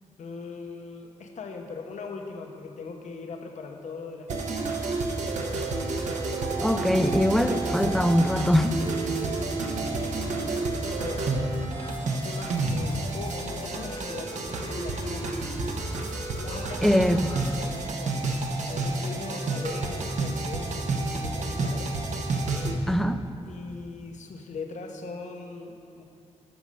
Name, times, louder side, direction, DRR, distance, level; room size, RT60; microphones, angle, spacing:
voice 1, 0.2-4.6 9.9-11.3 12.2-15.4 16.3-16.9 17.6-18.3 18.6-22.0 23.5-26.1, left 4 dB, 85° left, 3 dB, 0.9 m, -40 dB
sound 1, 4.3-22.7, right 2 dB, 80° right, 1.0 m, -30 dB
voice 2, 6.6-8.8 16.8-17.3 22.9-23.2, equal, ahead, 9 dB, 0.4 m, -22 dB
sound 2, 6.8-17.9, left 2 dB, 45° left, 1.1 m, -43 dB
12.5 x 6.3 x 5.4 m, 2.5 s
wide cardioid pair, 120°, 12 cm